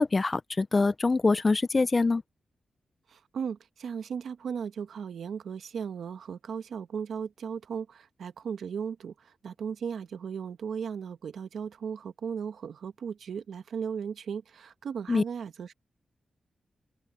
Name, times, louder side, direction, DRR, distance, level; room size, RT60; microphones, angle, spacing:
voice 1, 0.0-2.2 15.1-15.2, left 3 dB, 30° left, 0.5 m, -24 dB
voice 2, 3.1-15.7, right 7 dB, 85° right, 1.3 m, -36 dB
wide cardioid pair, 105°, 0 cm